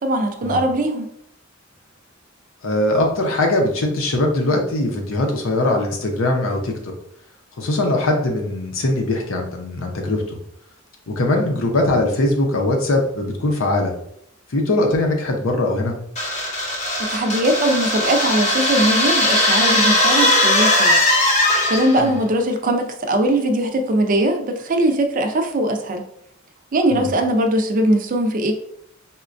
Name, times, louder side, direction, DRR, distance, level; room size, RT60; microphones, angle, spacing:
voice 1, 0.0-1.1 17.0-21.0 21.7-26.1 26.7-28.5, right 1 dB, 40° right, 5 dB, 0.4 m, -20 dB
voice 2, 2.6-6.9 7.6-10.4 11.1-13.9 14.5-16.0 22.0-22.1 26.9-27.1, left 1 dB, 70° left, 1 dB, 0.7 m, -21 dB
sound 1, 16.2-22.1, left 1 dB, 35° left, 0.8 m, -18 dB
4.2 x 2.2 x 2.5 m, 0.72 s
head